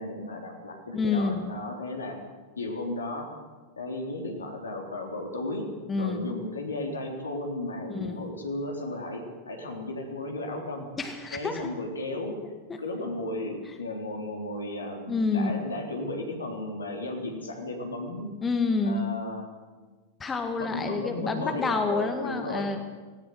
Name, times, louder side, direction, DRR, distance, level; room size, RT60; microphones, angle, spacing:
voice 1, 0.0-2.2 2.6-3.3 3.8-10.9 11.3-12.4 12.8-18.3 18.8-19.5 20.6-22.7, left 2 dB, 75° left, 2 dB, 3.8 m, -34 dB
voice 2, 0.9-1.4 5.9-6.3 7.9-8.3 11.0-11.7 12.7-12.8 15.1-15.7 18.4-19.1 20.2-22.8, left 4 dB, 15° left, 6 dB, 1.9 m, -28 dB
18.5 x 17.5 x 8.2 m, 1.3 s
figure-of-eight pair, 90°, 0 cm